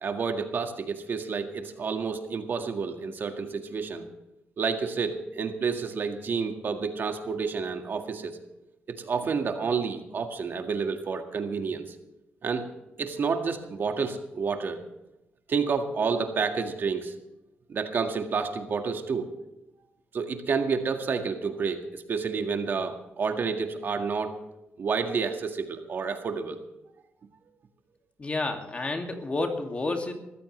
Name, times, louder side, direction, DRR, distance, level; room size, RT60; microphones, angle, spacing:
voice 1, 0.0-4.1 4.6-8.3 8.9-11.9 12.4-12.7 13.0-14.8 15.5-17.1 17.7-19.3 20.1-24.4 24.8-26.6, right 5 dB, 55° right, 5 dB, 1.9 m, -29 dB
voice 2, 28.2-30.1, left 2 dB, 30° left, 4 dB, 2.3 m, -30 dB
21.5 x 14.5 x 3.3 m, 0.94 s
cardioid pair, 110°, 4 cm